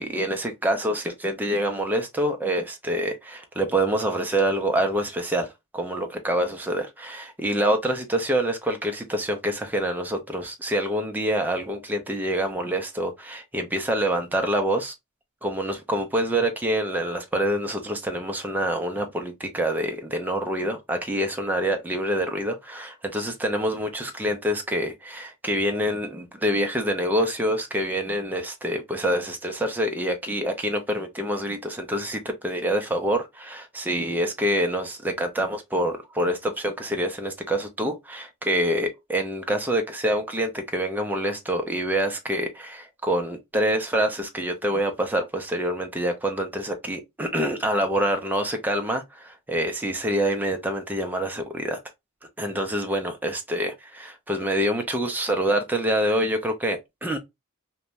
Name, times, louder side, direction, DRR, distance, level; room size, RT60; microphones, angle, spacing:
voice 1, 0.0-14.9 15.4-51.8 52.4-57.2, right 1 dB, 10° right, 0.5 m, -26 dB
2.5 x 2.2 x 3.0 m
head